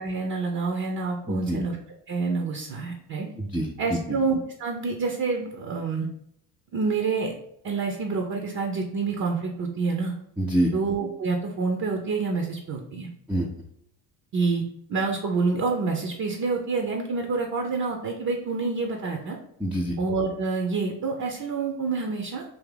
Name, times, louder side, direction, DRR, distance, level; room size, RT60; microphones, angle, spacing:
voice 1, 0.0-1.8 2.1-3.3 3.8-6.1 6.7-7.3 7.6-10.1 10.7-13.1 14.3-14.6 14.9-19.4 20.0-22.4, right 4 dB, 40° right, 2 dB, 0.7 m, -27 dB
voice 2, 1.3-1.6 3.4-4.2 10.4-10.7 13.3-13.5 19.6-20.0, right 1 dB, 5° right, -2 dB, 0.5 m, -26 dB
3.5 x 2.7 x 3.9 m, 0.73 s
hypercardioid pair, 70°, 48 cm